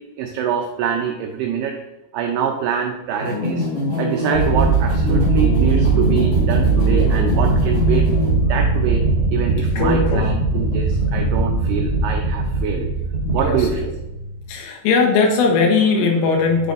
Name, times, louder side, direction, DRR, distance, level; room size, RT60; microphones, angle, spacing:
voice 1, 0.0-1.8 2.1-3.7 4.0-8.1 8.5-9.0 9.3-12.9 13.3-13.9, right 7 dB, 90° right, 2 dB, 2.3 m, -25 dB
sound 1, 3.2-8.3, left 2 dB, 70° left, 1.2 m, -24 dB
sound 2, 4.3-14.4, right 4 dB, 40° left, 1.4 m, -19 dB
voice 2, 9.8-10.3 13.2-13.9 14.5-16.7, left 4 dB, 90° left, 1 dB, 3.8 m, -19 dB
9.7 x 7.0 x 2.6 m, 0.92 s
omnidirectional pair, 5.5 m